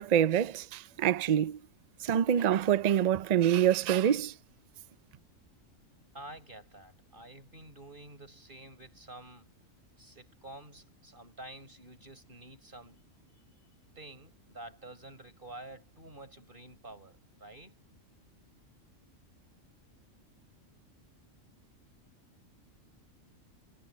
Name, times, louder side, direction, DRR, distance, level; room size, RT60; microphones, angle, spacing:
voice 1, 0.0-1.6 2.0-4.3, right 10 dB, 85° right, 0.3 m, -26 dB
voice 2, 6.1-9.5 10.0-13.0 14.0-17.7, right 1 dB, 40° right, 5.7 m, -49 dB
omnidirectional pair, 1.4 m